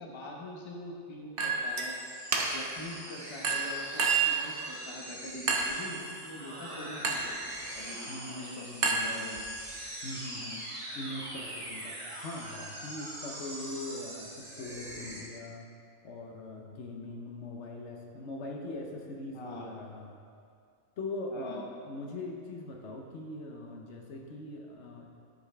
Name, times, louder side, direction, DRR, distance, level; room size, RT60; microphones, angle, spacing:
voice 1, 0.0-2.0 2.5-7.3 7.7-9.4 13.6-13.7 19.3-19.7 21.3-21.7, left 1 dB, 25° left, -1 dB, 0.8 m, -44 dB
Chink clink, 1.4-1.9 2.3-2.8 3.4-4.4 5.5-5.9 7.0-7.4 8.8-9.6, right 4 dB, 50° right, 0.9 m, -29 dB
sound 1, 1.6-15.2, right 1 dB, 25° right, 1.3 m, -43 dB
voice 2, 8.1-9.3 10.0-10.6 10.9-15.7 16.0-20.2 21.0-25.1, left 2 dB, 65° left, 1 dB, 1.0 m, -41 dB
11.5 x 5.2 x 3.3 m, 2.3 s
omnidirectional pair, 1.3 m